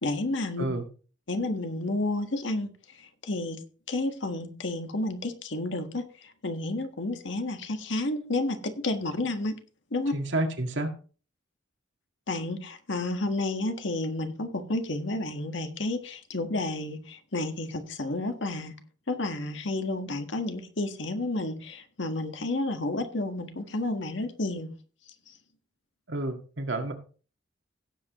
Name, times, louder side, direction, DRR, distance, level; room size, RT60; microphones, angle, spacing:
voice 1, 0.0-0.6 1.3-2.7 3.0-3.6 3.9-9.5 9.9-10.1 12.3-18.7 19.1-24.7, left 2 dB, 75° left, 6 dB, 1.6 m, -31 dB
voice 2, 10.1-10.9 26.1-26.9, right 1 dB, 75° right, 4 dB, 1.9 m, -29 dB
16.5 x 7.8 x 3.1 m, 0.38 s
head